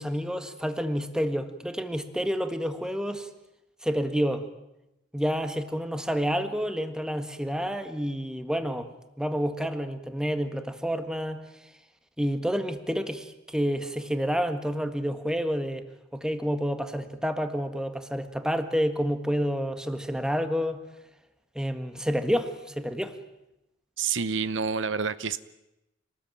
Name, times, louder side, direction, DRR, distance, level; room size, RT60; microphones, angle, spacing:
voice 1, 0.0-3.3 3.8-4.5 5.1-8.9 9.2-11.4 12.2-15.9 16.1-20.8 21.6-23.2, equal, 5° right, 8 dB, 1.8 m, -29 dB
voice 2, 24.0-25.4, right 5 dB, 70° right, 14 dB, 0.9 m, -28 dB
26.5 x 20.0 x 9.1 m, 0.91 s
head